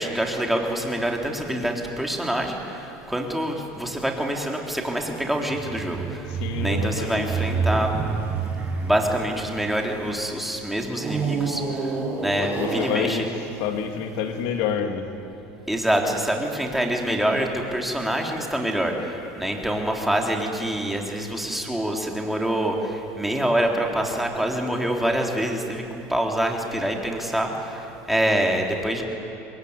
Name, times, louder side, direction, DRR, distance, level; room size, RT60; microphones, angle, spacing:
voice 1, 0.0-6.3 6.6-7.9 8.8-13.2 15.7-25.8 26.1-29.0, right 1 dB, 5° right, 1 dB, 3.6 m, -26 dB
sound 1, 5.5-10.2 10.9-14.4, right 5 dB, 30° right, 5.8 m, -29 dB
voice 2, 6.3-7.4 12.4-15.1, left 7 dB, 75° left, 6 dB, 2.5 m, -28 dB
25.5 x 21.0 x 9.7 m, 3.0 s
supercardioid pair, 120°, 6 cm